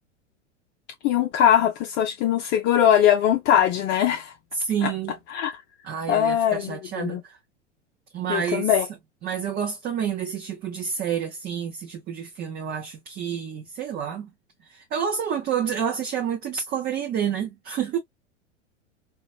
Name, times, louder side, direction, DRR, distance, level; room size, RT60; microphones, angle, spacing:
voice 1, 1.0-4.3 4.8-4.9 5.3-5.5 6.1-7.2 8.3-8.8, left 10 dB, 30° left, 0.5 m, -21 dB
voice 2, 4.5-5.1 5.8-7.4 8.1-8.7 9.2-14.3 14.6-18.0, right 8 dB, 25° right, 0.6 m, -29 dB
4.0 x 2.3 x 2.3 m
figure-of-eight pair, 95°, 37 cm